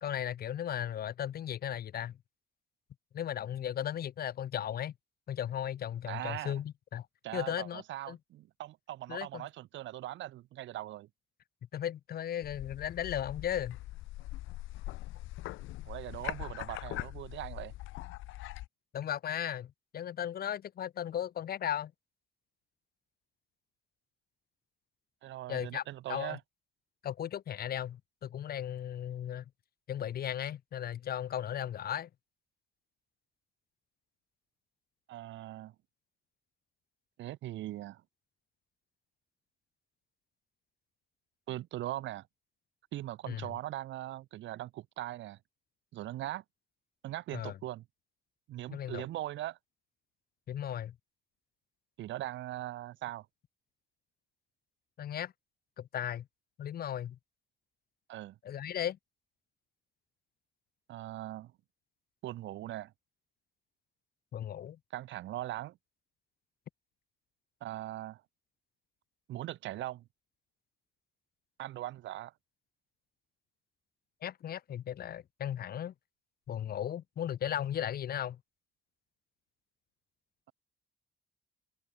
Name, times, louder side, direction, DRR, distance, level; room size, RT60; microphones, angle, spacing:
voice 1, 0.0-2.2 3.1-4.9 5.3-7.1 7.3-8.2 9.1-9.5 11.7-13.8 18.9-21.9 25.5-25.8 26.1-26.4 27.0-29.4 29.9-32.1 43.3-43.5 47.3-47.6 48.7-49.1 50.5-50.9 55.0-55.3 55.8-56.3 56.6-57.2 58.4-59.0 64.3-64.8 74.2-75.9 76.5-78.4, left 10 dB, 50° left, 0.6 m, -36 dB
voice 2, 6.1-6.6 7.2-11.1 15.9-17.7 25.2-26.4 35.1-35.7 37.2-38.0 41.5-42.3 42.9-45.4 45.9-46.4 47.0-47.9 48.5-49.6 52.0-53.3 58.1-58.4 60.9-61.5 62.2-62.9 64.9-65.8 67.6-68.2 69.3-70.0 71.6-72.3, right 14 dB, 70° right, 0.5 m, -40 dB
sound 1, 12.4-18.7, left 17 dB, 90° left, 0.7 m, -42 dB
cardioid pair, 90°, 20 cm